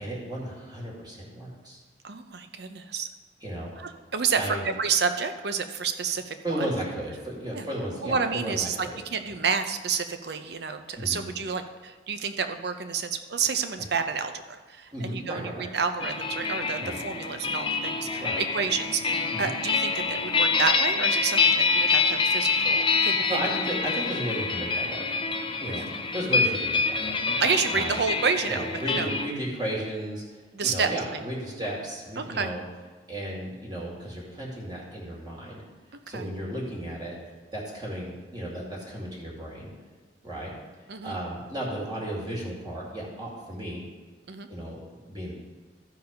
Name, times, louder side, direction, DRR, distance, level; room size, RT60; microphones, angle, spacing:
voice 1, 0.0-1.8 3.4-4.0 4.3-4.6 6.4-9.0 9.3-9.4 11.0-11.2 14.9-15.7 16.8-17.0 18.2-18.4 19.3-19.5 23.3-25.1 25.6-27.2 27.7-28.0 28.5-32.6 33.1-35.6 36.1-37.1 37.5-39.7 40.2-40.6 41.0-43.8 44.5-44.8 45.0-45.3, right 1 dB, 25° right, -4 dB, 2.3 m, -34 dB
voice 2, 2.0-3.1 3.8-6.7 7.5-7.7 8.0-23.4 25.7-25.9 27.4-28.6 28.9-29.1 30.5-31.2 32.2-32.5 35.9-36.3 40.9-41.2 44.3-44.5, right 5 dB, 65° right, 8 dB, 0.7 m, -29 dB
sound 1, 16.0-29.3, left 4 dB, 30° left, 0.6 m, -26 dB
13.5 x 4.7 x 5.2 m, 1.3 s
head